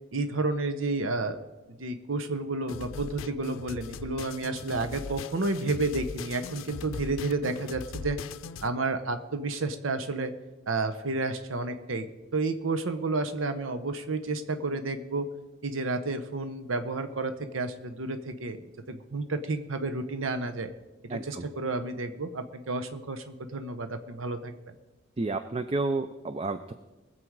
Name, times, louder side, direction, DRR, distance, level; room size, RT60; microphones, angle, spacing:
voice 1, 0.1-1.4 1.8-8.2 8.6-10.3 10.7-15.3 15.6-20.7 21.0-24.5, right 3 dB, 80° right, 8 dB, 0.8 m, -31 dB
sound 1, 2.7-8.7, left 4 dB, 85° left, 0.5 m, -40 dB
voice 2, 21.1-21.4 25.2-26.7, right 3 dB, 30° right, 10 dB, 0.4 m, -31 dB
21.0 x 7.7 x 4.7 m, 1.1 s
head